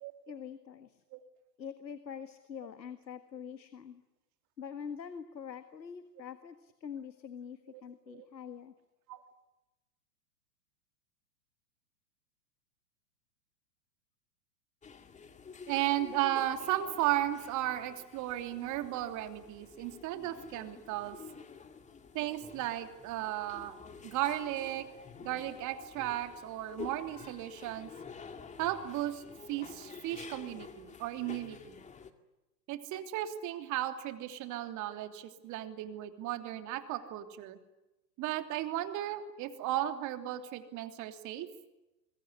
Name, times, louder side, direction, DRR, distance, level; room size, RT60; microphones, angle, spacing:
voice 1, 0.3-1.0 1.6-4.0 4.6-8.7, left 7 dB, 90° left, 10 dB, 1.8 m, -45 dB
sound 1, 14.8-32.1, left 5 dB, 15° left, 2.1 m, -50 dB
voice 2, 15.7-21.2 22.1-23.8 24.0-24.9 25.2-27.9 28.6-29.2 29.5-31.8 32.7-37.6 38.2-41.5, right 13 dB, 35° right, 7 dB, 3.1 m, -35 dB
25.5 x 23.0 x 9.9 m, 0.99 s
hypercardioid pair, 115°, 50 cm